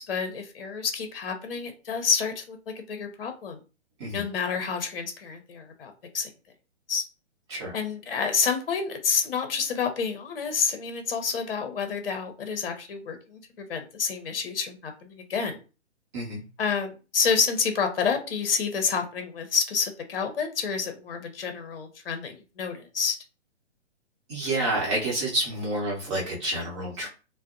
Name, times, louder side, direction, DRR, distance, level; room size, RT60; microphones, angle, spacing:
voice 1, 0.0-3.6 4.1-6.3 6.9-7.0 7.7-15.6 16.6-23.2, left 6 dB, 55° left, 7 dB, 0.7 m, -29 dB
voice 2, 24.3-27.1, right 1 dB, 25° right, -3 dB, 0.9 m, -29 dB
2.5 x 2.0 x 2.5 m, 0.33 s
figure-of-eight pair, 130°, 35 cm